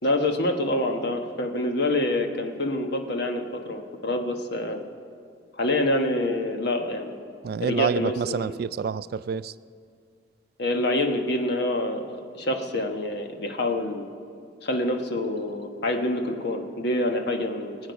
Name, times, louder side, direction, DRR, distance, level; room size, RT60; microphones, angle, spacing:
voice 1, 0.0-4.8 5.6-7.2 7.6-8.5 10.6-14.1 14.6-17.8, left 1 dB, 60° left, 1.3 m, -26 dB
voice 2, 7.4-9.5, right 6 dB, 55° right, 0.3 m, -28 dB
23.0 x 8.8 x 5.3 m
head